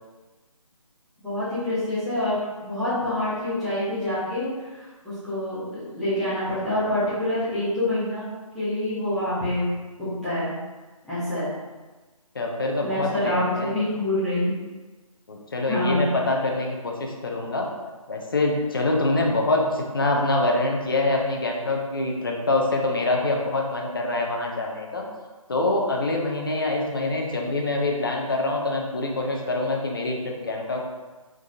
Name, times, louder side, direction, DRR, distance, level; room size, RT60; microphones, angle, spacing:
voice 1, 1.2-2.3 2.6-8.3 8.5-9.7 10.0-10.5 11.1-11.5 12.8-14.6 15.7-16.2, left 1 dB, ahead, -17 dB, 1.0 m, -26 dB
voice 2, 12.3-13.7 15.3-17.7 18.1-25.1 25.5-30.8, left 2 dB, 40° left, 0 dB, 0.7 m, -25 dB
4.9 x 3.9 x 2.6 m, 1.2 s
figure-of-eight pair, 155°, 18 cm